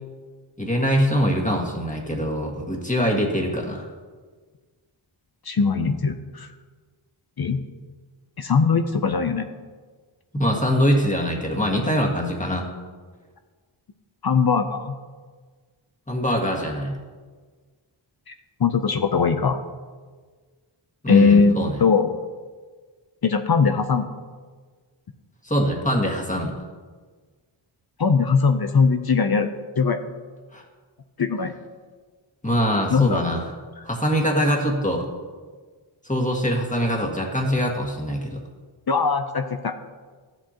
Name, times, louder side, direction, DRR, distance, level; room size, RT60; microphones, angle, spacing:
voice 1, 0.6-3.9 10.3-12.7 16.1-17.0 21.0-21.8 25.4-26.5 30.5-30.6 32.4-33.4 33.8-35.1 36.0-38.4, equal, 15° left, 0 dB, 1.8 m, -23 dB
voice 2, 5.5-6.5 7.4-7.6 8.4-9.5 14.2-15.0 18.6-19.6 21.1-21.5 21.8-22.1 23.2-24.1 28.0-29.5 29.8-30.0 31.2-31.5 32.9-33.2 38.9-39.9, left 5 dB, 50° left, 7 dB, 0.6 m, -20 dB
13.0 x 7.7 x 2.9 m, 1.5 s
wide cardioid pair, 60°, 49 cm